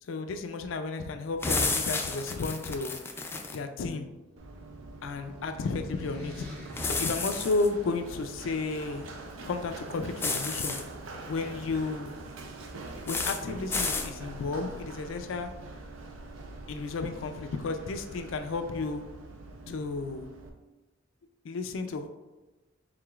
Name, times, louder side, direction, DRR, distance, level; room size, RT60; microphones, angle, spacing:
voice 1, 0.0-3.0 3.5-4.1 5.0-6.5 6.8-9.1 9.4-10.8 11.3-12.1 13.1-15.5 16.7-19.0 19.7-20.3 21.4-22.1, left 3 dB, 80° left, 7 dB, 0.4 m, -33 dB
sound 1, 1.4-3.6 6.8-7.7 10.2-10.8 13.1-13.4 13.7-14.1, left 3 dB, 10° left, 0.4 m, -31 dB
sound 2, 3.7-8.3, left 1 dB, 55° right, 1.0 m, -49 dB
Run, 4.4-20.5, right 2 dB, 90° right, 0.5 m, -44 dB
4.7 x 3.9 x 2.4 m, 1.1 s
head